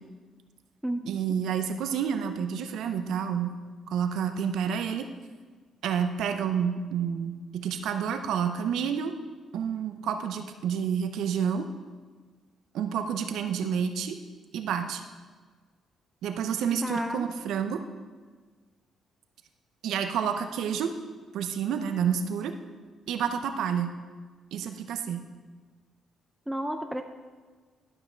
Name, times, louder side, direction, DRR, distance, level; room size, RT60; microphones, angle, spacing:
voice 1, 1.1-3.5 3.9-5.1 5.8-9.1 9.5-11.7 12.7-14.2 14.5-15.0 16.2-17.8 19.8-20.9 21.3-22.5 23.1-23.9 24.5-25.2, right 7 dB, 80° right, 8 dB, 0.7 m, -29 dB
voice 2, 16.8-17.3 26.5-27.0, equal, 5° right, 5 dB, 0.5 m, -31 dB
11.5 x 5.7 x 4.5 m, 1.5 s
cardioid pair, 90°, 0 cm